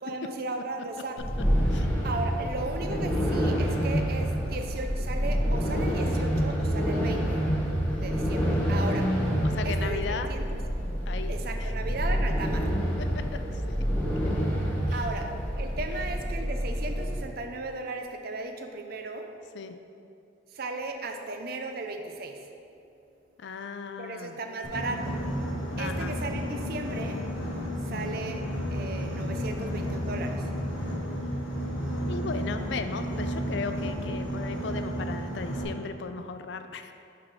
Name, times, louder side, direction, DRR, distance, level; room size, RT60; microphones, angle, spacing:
voice 1, 0.0-1.2 2.0-7.4 8.0-9.1 9.6-10.6 11.3-12.7 14.9-15.3 15.5-19.3 20.5-22.4 24.0-25.2 25.8-27.2 27.8-28.4 28.7-30.5, right 3 dB, 50° right, 5 dB, 0.5 m, -36 dB
sound 1, 1.2-17.2, equal, 10° left, 1.0 m, -27 dB
voice 2, 1.7-2.3 2.9-3.4 9.4-10.3 11.1-11.7 13.0-13.8 14.2-15.0 19.5-19.8 23.4-24.4 25.8-26.1 27.9-28.2 32.1-36.9, left 5 dB, 65° left, 9 dB, 0.4 m, -37 dB
Boat Water vehicle, 24.6-35.6, equal, 85° left, 1.5 m, -32 dB
5.9 x 4.9 x 4.7 m, 2.6 s
head